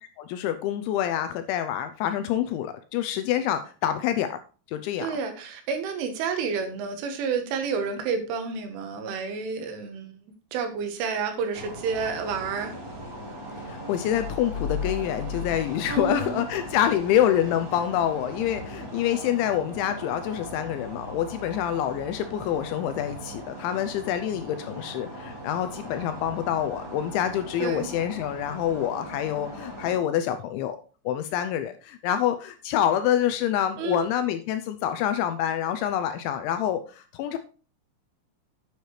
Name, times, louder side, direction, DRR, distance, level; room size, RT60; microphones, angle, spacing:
voice 1, 0.2-4.4 4.7-5.1 13.6-30.8 31.1-37.4, left 10 dB, 80° left, 9 dB, 2.7 m, -27 dB
voice 2, 5.0-10.1 10.5-12.8 15.9-16.4 27.6-27.9 33.8-34.1, right 6 dB, 80° right, 6 dB, 3.8 m, -30 dB
sound 1, 11.5-30.0, right 1 dB, 20° right, 3.9 m, -40 dB
sound 2, 14.1-16.9, left 6 dB, 60° left, 2.9 m, -35 dB
9.6 x 8.2 x 3.2 m, 0.37 s
omnidirectional pair, 5.8 m